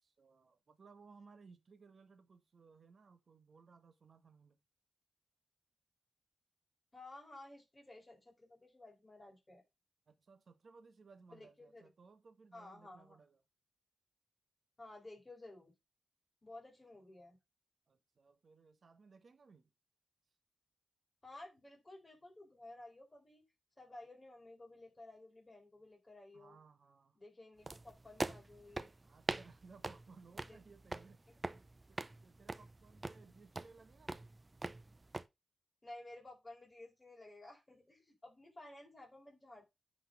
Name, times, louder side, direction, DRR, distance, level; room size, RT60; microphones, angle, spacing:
voice 1, 0.0-4.6 10.1-13.4 17.9-19.7 26.3-27.2 29.0-34.3, right 4 dB, 60° right, 1.3 m, -62 dB
voice 2, 6.9-9.6 11.3-11.9 12.5-13.2 14.8-15.7 16.4-17.4 21.2-23.4 23.8-26.6 27.2-28.9 30.4-30.6 32.5-32.6 33.1-33.2 35.8-39.7, left 2 dB, 25° left, 4.0 m, -55 dB
sound 1, 27.7-35.2, right 2 dB, 25° right, 0.6 m, -44 dB
9.6 x 4.0 x 5.3 m
cardioid pair, 75°, 0 cm